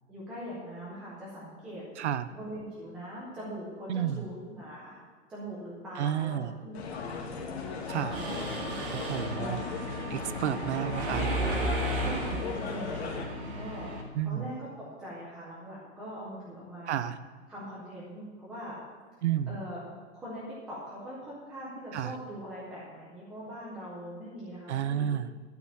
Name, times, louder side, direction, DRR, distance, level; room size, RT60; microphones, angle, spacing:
voice 1, 0.1-1.8 2.3-5.0 5.3-7.1 8.0-8.4 9.3-9.6 10.3-10.9 11.9-13.9 14.2-17.0 17.5-18.8 19.5-19.8 20.2-25.1, equal, 5° right, -8 dB, 0.4 m, -42 dB
voice 2, 2.0-2.3 3.9-4.2 6.0-6.5 7.9-8.2 8.9-9.6 10.1-11.3 14.1-14.5 16.9-17.2 19.2-19.6 21.9-22.2 24.7-25.3, right 10 dB, 65° right, 14 dB, 0.7 m, -31 dB
sound 1, 6.7-13.3, left 5 dB, 60° left, 2.0 m, -37 dB
Mechanisms, 8.1-14.0, right 1 dB, 45° right, 2.0 m, -34 dB
12.0 x 5.0 x 8.3 m, 1.5 s
hypercardioid pair, 165°, 36 cm